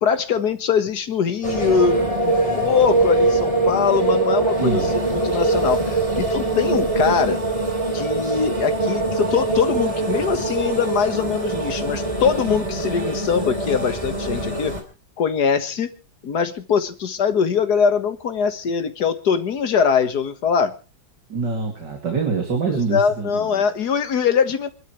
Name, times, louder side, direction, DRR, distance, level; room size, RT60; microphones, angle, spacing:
voice 1, 0.0-7.5 7.9-14.8 15.2-15.9 16.2-20.8 22.7-24.7, left 6 dB, 55° left, 9 dB, 2.0 m, -22 dB
sound 1, 1.4-14.8, right 2 dB, 15° right, 3.3 m, -23 dB
voice 2, 4.6-4.9 21.3-23.6, right 4 dB, 65° right, 3 dB, 3.5 m, -25 dB
27.0 x 12.0 x 3.2 m, 0.33 s
omnidirectional pair, 2.1 m